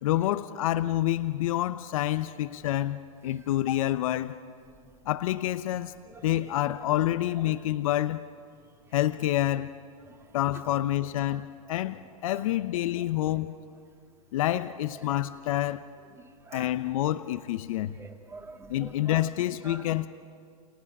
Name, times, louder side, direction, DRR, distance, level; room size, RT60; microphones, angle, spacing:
voice 1, 0.0-4.4 5.1-5.9 6.2-8.2 8.9-9.7 10.3-13.5 14.3-15.8 16.5-18.0 18.7-20.1, left 14 dB, 65° left, 0.8 m, -28 dB
voice 2, 11.0-11.4 12.3-12.4 15.1-15.2 16.1-16.8 18.0-19.3 19.6-20.0, right 3 dB, 15° right, 1.7 m, -46 dB
30.0 x 27.0 x 5.4 m
hypercardioid pair, 125°, 19 cm